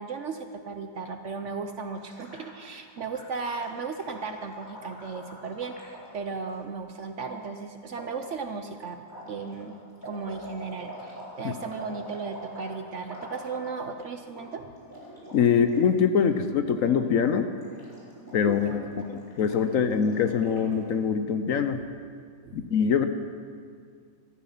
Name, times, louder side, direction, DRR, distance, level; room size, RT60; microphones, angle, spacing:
voice 1, 0.0-9.0 9.3-9.8 10.1-14.7 18.4-19.1 21.7-21.8 22.4-22.6, right 5 dB, 60° right, 7 dB, 0.8 m, -36 dB
Gurgling, 2.0-6.6 7.2-7.4 7.9-8.3 9.0-14.0 14.2-14.4 14.7-15.9 16.1-16.4 16.7-17.2 17.5-20.9, equal, 10° left, 3.6 m, -45 dB
voice 2, 15.3-17.5 18.3-18.8 19.1-21.8 22.5-23.1, left 7 dB, 60° left, 9 dB, 1.0 m, -23 dB
14.5 x 13.0 x 5.7 m, 2.1 s
omnidirectional pair, 1.8 m